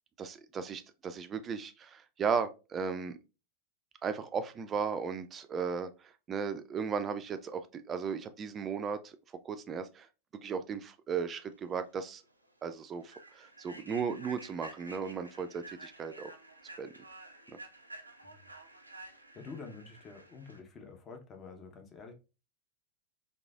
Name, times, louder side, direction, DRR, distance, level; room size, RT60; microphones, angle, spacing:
voice 1, 0.2-3.2 4.0-9.2 9.4-10.1 10.4-12.2 12.6-16.3 16.8-16.9, right 6 dB, 25° right, 0.4 m, -36 dB
Human voice / Train, 11.7-11.9 12.3-12.5 13.0-20.6, right 2 dB, 85° right, 0.4 m, -51 dB
voice 2, 19.3-22.1, left 4 dB, 25° left, 0.7 m, -48 dB
3.8 x 2.6 x 2.2 m
figure-of-eight pair, 90°, 0 cm